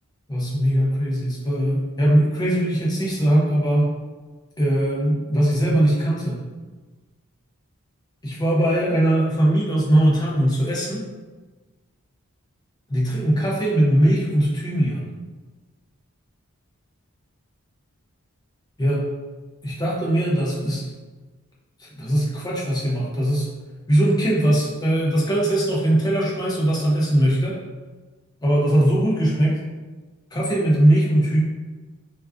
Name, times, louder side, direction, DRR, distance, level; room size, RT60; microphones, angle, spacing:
voice 1, 0.3-3.9 4.6-6.4 8.2-11.0 12.9-15.0 18.8-19.0 19.6-20.9 21.8-23.5 23.9-27.6 28.4-29.6 30.3-31.4, right 1 dB, 20° left, -5 dB, 0.5 m, -20 dB
2.4 x 2.3 x 2.3 m, 1.3 s
head